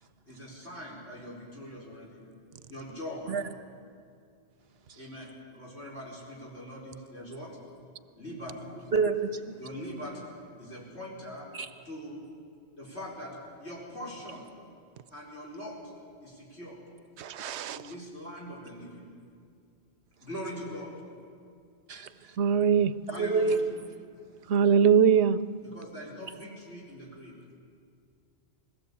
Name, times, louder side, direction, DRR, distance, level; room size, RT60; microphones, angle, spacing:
voice 1, 0.3-2.2 2.7-3.4 5.0-7.5 8.2-8.7 9.6-10.3 10.6-11.5 11.8-12.2 12.8-14.5 15.1-15.8 16.2-16.8 17.7-19.0 20.2-20.9 23.1-23.6 25.6-27.3, equal, 85° left, -4 dB, 5.3 m, -42 dB
voice 2, 8.9-9.5 11.5-11.7 21.9-22.1 23.2-23.6, right 4 dB, 70° right, 9 dB, 1.3 m, -27 dB
voice 3, 17.2-17.8 22.4-22.9 24.5-25.4, right 7 dB, 85° right, 15 dB, 1.0 m, -22 dB
21.0 x 16.0 x 8.4 m, 2.3 s
omnidirectional pair, 1.1 m